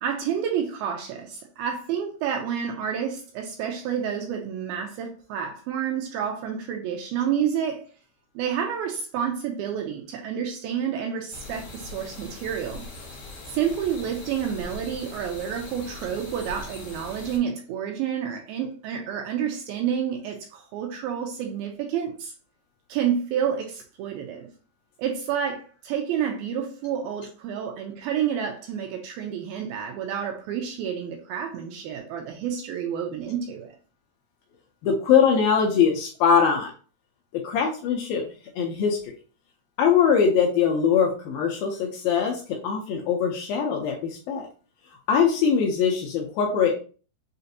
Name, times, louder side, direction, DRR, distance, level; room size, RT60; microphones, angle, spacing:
voice 1, 0.0-7.9 8.4-12.8 13.5-22.3 22.9-24.5 25.0-33.7, right 8 dB, 85° right, 2.2 m, -29 dB
sound 1, 11.3-17.4, left 2 dB, 60° left, 1.4 m, -41 dB
voice 2, 34.8-36.7 37.3-38.2 38.6-39.1 39.8-44.5 45.1-46.7, left 7 dB, 80° left, 2.2 m, -22 dB
6.4 x 2.5 x 2.7 m
omnidirectional pair, 4.6 m